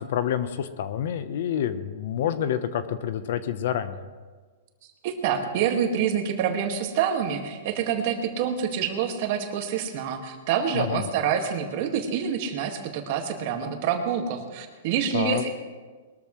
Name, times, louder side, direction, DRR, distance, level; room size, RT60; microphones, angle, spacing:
voice 1, 0.0-4.1 10.7-11.1 15.1-15.4, left 9 dB, 60° left, 11 dB, 1.0 m, -28 dB
voice 2, 5.0-15.5, right 8 dB, 45° right, 4 dB, 1.9 m, -27 dB
21.5 x 13.5 x 3.2 m, 1.4 s
hypercardioid pair, 155°, 0 cm